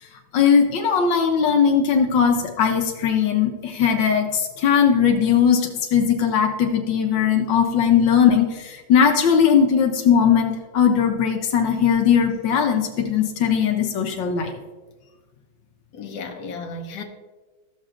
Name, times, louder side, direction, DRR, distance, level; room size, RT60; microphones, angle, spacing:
voice 1, 0.3-14.5, left 7 dB, 90° left, 1.4 m, -19 dB
voice 2, 15.9-17.0, left 3 dB, 70° left, 1.4 m, -34 dB
14.0 x 6.5 x 2.5 m
omnidirectional pair, 1.9 m